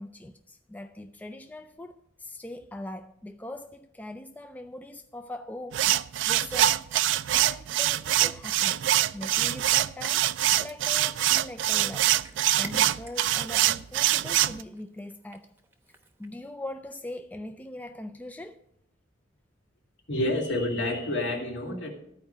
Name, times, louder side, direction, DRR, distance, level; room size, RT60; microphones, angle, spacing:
voice 1, 0.0-5.9 6.3-6.8 7.3-10.3 10.6-12.1 12.6-15.5 16.2-18.6, left 1 dB, 10° left, 0.3 m, -41 dB
sound 1, 5.7-14.6, right 13 dB, 70° right, 0.3 m, -24 dB
Cat, 11.3-16.5, right 2 dB, 10° right, 0.8 m, -51 dB
voice 2, 20.1-21.9, left 1 dB, 65° left, 2.3 m, -28 dB
12.5 x 4.8 x 7.8 m
head